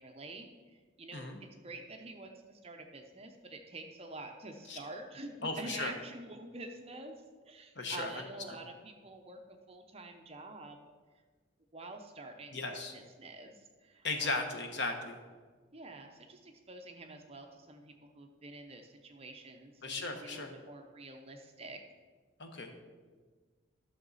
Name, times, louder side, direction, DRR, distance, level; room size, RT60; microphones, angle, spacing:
voice 1, 0.0-7.2 7.4-10.8 11.7-14.5 15.7-21.8, right 2 dB, 30° right, 4 dB, 0.7 m, -47 dB
voice 2, 5.4-5.9 7.8-8.1 12.5-12.9 14.0-15.2 19.8-20.5 22.4-22.9, left 3 dB, 60° left, 5 dB, 1.1 m, -36 dB
12.0 x 6.4 x 4.1 m, 1.5 s
head